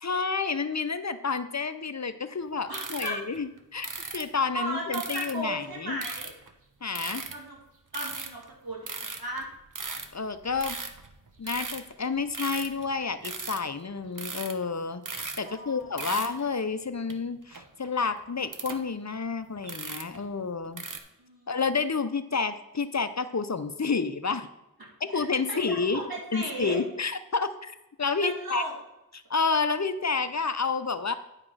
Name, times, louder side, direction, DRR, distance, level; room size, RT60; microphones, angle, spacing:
voice 1, 0.0-3.9 4.1-6.0 6.8-7.3 10.1-10.8 11.4-20.8 21.5-24.5 25.0-26.0 26.3-27.7 28.0-28.6 29.1-31.1, left 4 dB, 50° left, 11 dB, 0.7 m, -30 dB
sound 1, 2.7-4.2 4.9-5.3 6.0-6.5 6.9-7.6 7.9-8.5 8.9-11.9 12.2-12.9 13.2-13.6 14.0-14.6 14.9-15.6 15.8-16.5 17.1-17.2 17.5-18.8 19.1-19.2 19.6-20.2 20.8-21.0, right 4 dB, 60° right, 1.0 m, -37 dB
voice 2, 2.7-3.2 4.5-6.3 7.3-7.6 7.9-9.5 15.4-16.0 21.2-21.6 25.1-26.8 28.2-28.7, right 1 dB, 90° right, -3 dB, 2.7 m, -36 dB
9.7 x 5.0 x 5.6 m, 0.93 s
wide cardioid pair, 45°, 35 cm